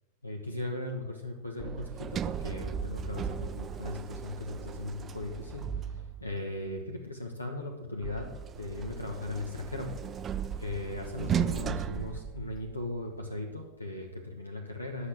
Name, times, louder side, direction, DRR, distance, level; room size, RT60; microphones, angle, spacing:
voice 1, 0.2-8.3 8.6-9.9 10.6-15.1, left 2 dB, 85° left, 2 dB, 1.2 m, -38 dB
Sliding door, 1.6-6.4 8.0-13.0, right 8 dB, 25° right, 0.4 m, -36 dB
10.0 x 6.4 x 7.4 m, 1.1 s
figure-of-eight pair, 90°, 0 cm